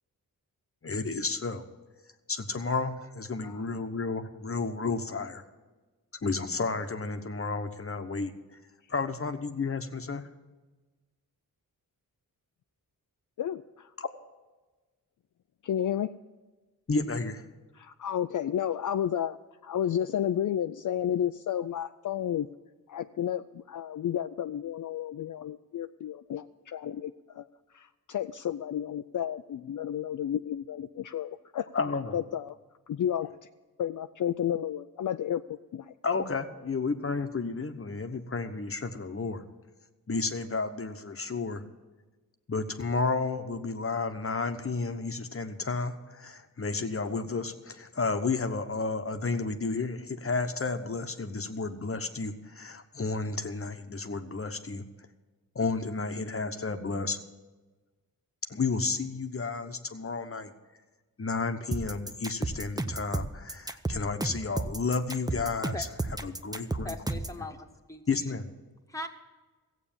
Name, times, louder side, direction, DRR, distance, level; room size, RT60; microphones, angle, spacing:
voice 1, 0.8-1.6 2.3-5.4 6.2-8.3 8.9-10.2 14.0-14.1 16.9-17.4 31.7-32.2 36.0-39.4 40.1-41.6 42.5-54.8 55.5-57.2 58.5-60.5 61.2-67.0 67.4-67.5 68.1-68.4, left 4 dB, 40° left, 7 dB, 1.0 m, -32 dB
voice 2, 13.4-13.9 15.6-16.1 17.7-19.4 19.6-22.5 22.9-27.5 27.7-31.7 32.1-32.6 32.9-33.3 33.8-35.9, left 10 dB, 60° left, 9 dB, 0.5 m, -32 dB
sound 1, 61.7-67.4, right 2 dB, 10° right, 0.7 m, -33 dB
voice 3, 66.8-68.3 68.9-69.1, left 1 dB, 10° left, 3 dB, 1.3 m, -40 dB
15.0 x 8.2 x 7.3 m, 1.2 s
wide cardioid pair, 90°, 36 cm